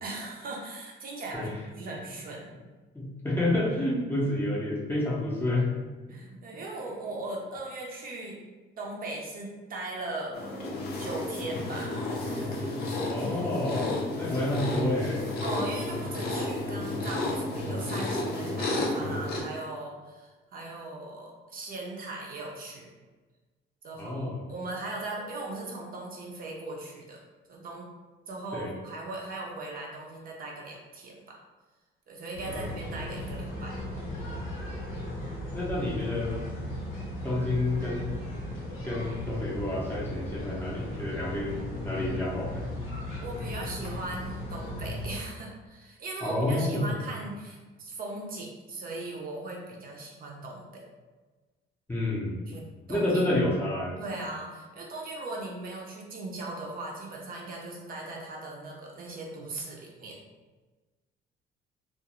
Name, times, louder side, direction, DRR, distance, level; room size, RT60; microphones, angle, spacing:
voice 1, 0.0-2.5 6.1-8.4 8.8-13.6 15.4-22.9 23.8-24.2 24.5-27.2 27.5-27.9 28.3-31.4 32.1-33.8 43.2-50.8 52.5-53.3 54.0-60.2, right 2 dB, 45° right, -1 dB, 0.5 m, -39 dB
voice 2, 2.9-5.7 13.1-15.2 24.0-24.4 28.5-28.7 32.5-32.7 35.5-36.3 37.2-38.1 38.8-42.7 46.2-47.0 51.9-52.4 52.9-54.0, left 1 dB, 10° left, -6 dB, 0.6 m, -29 dB
sound 1, 10.3-19.4, left 2 dB, 55° left, 0.5 m, -32 dB
sound 2, 32.3-45.2, left 1 dB, 85° left, 0.9 m, -37 dB
2.4 x 2.3 x 2.9 m, 1.3 s
cardioid pair, 150°, 20 cm